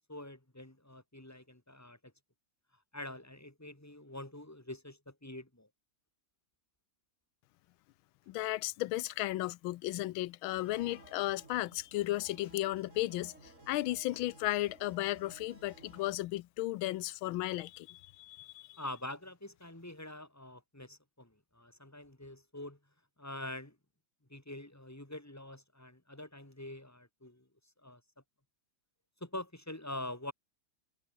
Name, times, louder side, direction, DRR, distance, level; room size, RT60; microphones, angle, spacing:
voice 1, 0.1-2.1 2.9-5.7 18.8-22.8 23.2-23.8 24.3-27.5 27.8-28.0 29.2-30.3, left 1 dB, 10° left, 3.3 m, -45 dB
voice 2, 8.3-13.3 13.7-18.8, left 16 dB, 90° left, 1.5 m, -35 dB
sound 1, 10.5-16.2, right 2 dB, 35° right, 6.2 m, -57 dB
omnidirectional pair, 2.2 m